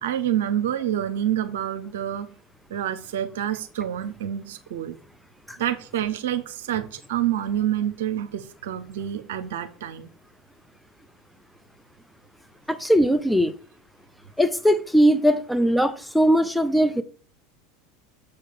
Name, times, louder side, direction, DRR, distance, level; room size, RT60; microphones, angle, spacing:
voice 1, 0.0-2.3 2.7-5.0 5.6-10.1 15.3-15.4, right 11 dB, 70° right, 0.8 m, -27 dB
voice 2, 12.7-13.6 14.4-17.0, equal, ahead, 0.7 m, -20 dB
7.1 x 4.7 x 6.6 m
hypercardioid pair, 80°, 0 cm